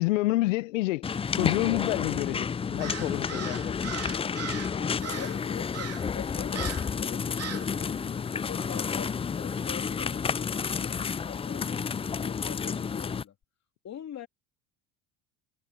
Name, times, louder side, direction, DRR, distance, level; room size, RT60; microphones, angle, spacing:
voice 1, 0.0-3.8, left 20 dB, 85° left, 0.8 m, -28 dB
sound 1, 1.0-13.2, left 6 dB, 15° left, 0.4 m, -31 dB
Crow, 2.8-4.7 5.0-5.4 5.7-6.1 6.5-6.9 7.4-7.7, right 8 dB, 40° right, 3.0 m, -38 dB
voice 2, 4.1-6.7 7.0-13.3 13.8-14.3, left 10 dB, 45° left, 3.2 m, -44 dB
hypercardioid pair, 80°, 38 cm